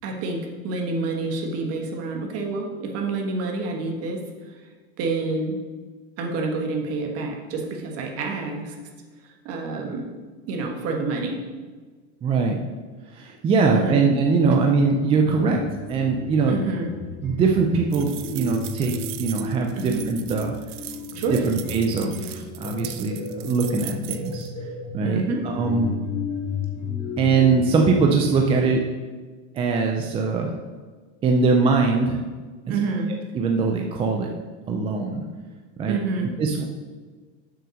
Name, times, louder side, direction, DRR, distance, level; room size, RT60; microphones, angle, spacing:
voice 1, 0.0-4.2 5.0-5.5 6.2-8.7 9.2-10.1 10.5-11.4 13.7-14.0 16.5-16.9 19.7-20.0 21.1-21.4 25.0-25.4 32.7-33.1 35.9-36.3, right 3 dB, 40° right, 2 dB, 1.5 m, -28 dB
voice 2, 12.2-12.6 13.1-15.6 15.9-16.7 17.2-18.9 19.2-20.5 21.3-24.5 24.9-25.9 27.2-28.8 29.5-30.5 31.2-32.2 33.3-34.3 34.7-35.2 35.8-36.0 36.4-36.6, right 4 dB, 15° right, 2 dB, 0.4 m, -22 dB
sound 1, 14.3-28.7, left 3 dB, 20° left, 1.9 m, -34 dB
sound 2, 17.9-24.5, right 14 dB, 85° right, 0.7 m, -38 dB
7.3 x 5.7 x 6.3 m, 1.4 s
supercardioid pair, 160°, 36 cm